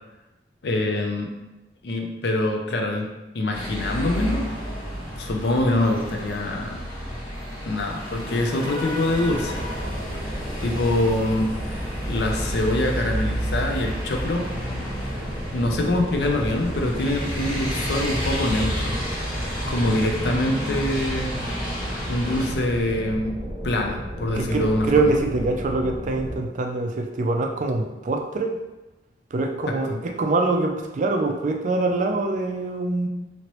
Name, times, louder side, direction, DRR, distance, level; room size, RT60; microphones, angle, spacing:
voice 1, 0.6-1.3 1.8-3.1 3.3-4.5 5.2-6.8 7.6-9.6 10.6-11.5 11.8-14.5 15.5-19.0 19.7-21.4 22.1-23.3 23.6-25.1 29.7-30.0, left 1 dB, 65° left, 2 dB, 0.5 m, -24 dB
sound 1, 3.5-22.5, equal, 30° left, 1.3 m, -31 dB
sound 2, 9.1-26.4, equal, 5° right, 1.3 m, -33 dB
voice 2, 24.3-28.6 29.3-33.1, right 3 dB, 45° right, 4 dB, 0.3 m, -24 dB
3.0 x 2.8 x 2.9 m, 1.0 s
head